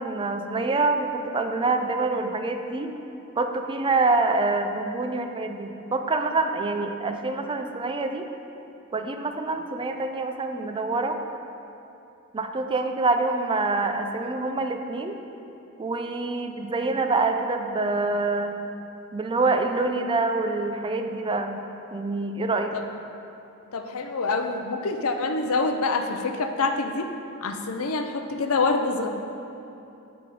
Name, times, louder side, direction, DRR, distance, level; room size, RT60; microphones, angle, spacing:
voice 1, 0.0-2.9 3.4-8.3 8.9-11.2 12.3-15.2 15.8-18.6 19.1-21.6 21.9-22.7, right 3 dB, 25° right, 6 dB, 0.4 m, -26 dB
voice 2, 23.7-27.1 27.4-29.1, left 3 dB, 75° left, 6 dB, 0.6 m, -26 dB
7.7 x 6.1 x 4.9 m, 2.9 s
head